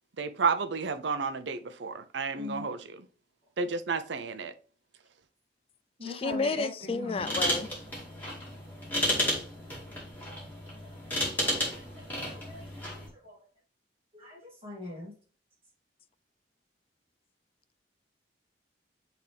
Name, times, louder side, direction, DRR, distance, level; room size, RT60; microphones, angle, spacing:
voice 1, 0.2-3.0 3.6-4.5, right 4 dB, 70° right, 0.6 m, -31 dB
voice 2, 2.3-2.7 6.0-7.3 11.7-11.8 12.3-13.4 14.1-15.1, left 2 dB, 30° right, 2.3 m, -41 dB
voice 3, 6.0-7.7, left 4 dB, 30° left, 0.3 m, -31 dB
sound 1, 7.2-13.1, equal, 10° left, 2.0 m, -32 dB
9.0 x 3.5 x 3.3 m
head